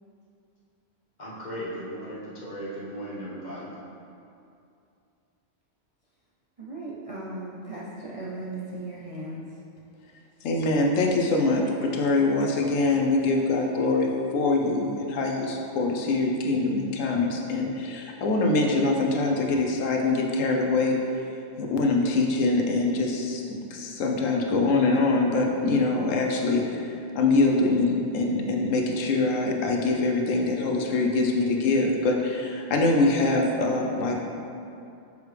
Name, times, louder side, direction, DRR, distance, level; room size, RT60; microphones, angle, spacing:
voice 1, 1.2-3.7, equal, 35° left, -7 dB, 1.4 m, -36 dB
voice 2, 6.6-9.6, right 2 dB, 40° right, -7 dB, 0.5 m, -37 dB
voice 3, 10.4-21.0 21.6-34.4, left 3 dB, 80° left, 1 dB, 1.0 m, -24 dB
6.6 x 4.7 x 3.3 m, 2.6 s
omnidirectional pair, 1.3 m